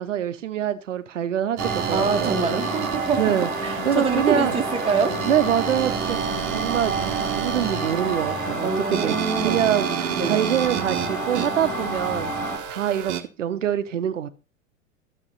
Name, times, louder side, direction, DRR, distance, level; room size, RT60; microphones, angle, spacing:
voice 1, 0.0-2.6 3.2-3.5 3.8-4.5 5.3-6.2 6.5-9.1 9.4-14.3, right 10 dB, 65° right, 1.0 m, -25 dB
sound 1, 1.6-12.6, right 1 dB, 5° left, 2.8 m, -29 dB
sound 2, 1.6-13.2, right 11 dB, 40° right, 1.2 m, -30 dB
voice 2, 1.9-3.3 3.6-5.1 8.6-9.6 10.1-10.5, right 5 dB, 15° right, 1.6 m, -25 dB
12.0 x 7.0 x 4.1 m
figure-of-eight pair, 90°, 40 cm